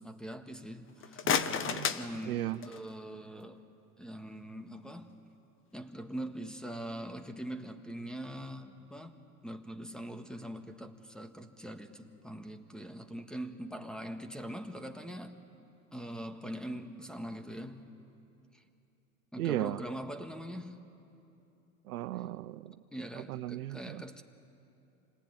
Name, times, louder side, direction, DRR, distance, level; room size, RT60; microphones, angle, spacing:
voice 1, 0.0-3.6 4.0-5.1 5.7-9.1 9.4-15.4 15.9-17.9 18.5-18.6 19.3-20.8 22.2-22.4 22.9-24.2, right 1 dB, ahead, 7 dB, 1.7 m, -42 dB
sound 1, 0.9-3.0, left 7 dB, 30° left, 1.1 m, -33 dB
voice 2, 1.2-1.9 2.3-2.6 19.4-19.8 21.9-22.8 23.3-24.0, right 15 dB, 80° right, 16 dB, 0.7 m, -36 dB
27.5 x 19.0 x 9.4 m, 2.8 s
hypercardioid pair, 95°, 44 cm